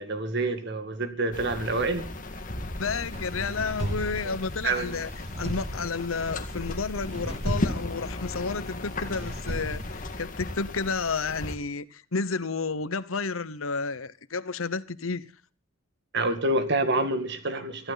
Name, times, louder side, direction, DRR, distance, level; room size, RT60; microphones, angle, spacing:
voice 1, 0.0-2.1 4.2-4.3 4.6-5.0 16.1-17.9, right 2 dB, 55° right, 2.2 m, -27 dB
sound 1, 1.3-11.6, left 2 dB, 40° left, 1.9 m, -36 dB
voice 2, 2.8-5.1 5.4-15.3, left 4 dB, 90° left, 1.0 m, -31 dB
sound 2, 2.8-10.2, right 1 dB, 30° right, 2.4 m, -37 dB
23.5 x 14.5 x 4.0 m
head